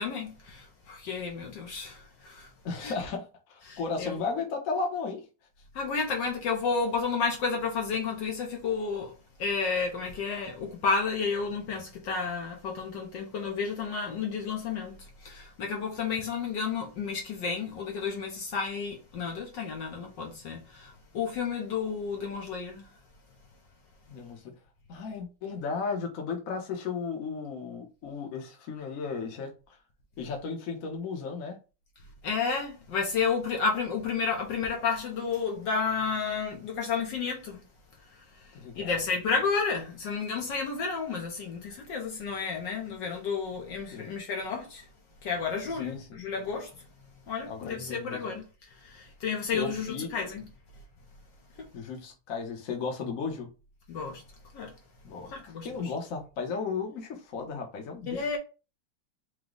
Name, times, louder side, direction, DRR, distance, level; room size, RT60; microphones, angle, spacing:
voice 1, 0.0-2.5 2.8-2.9 3.7-4.2 5.7-9.1 9.4-22.9 32.2-37.6 38.4-44.9 45.2-46.7 47.3-48.4 48.7-50.5 51.6-51.7 53.9-54.2 54.5-54.7 55.2-55.7 58.1-58.4, left 5 dB, 65° left, 1.4 m, -31 dB
voice 2, 2.6-5.2 24.1-24.5 24.9-29.8 30.2-31.6 38.5-39.0 43.9-44.1 45.8-46.2 47.4-48.2 49.5-50.1 51.7-53.5 55.0-55.3 55.6-58.3, left 5 dB, 50° left, 1.2 m, -35 dB
5.0 x 2.2 x 3.7 m
omnidirectional pair, 2.3 m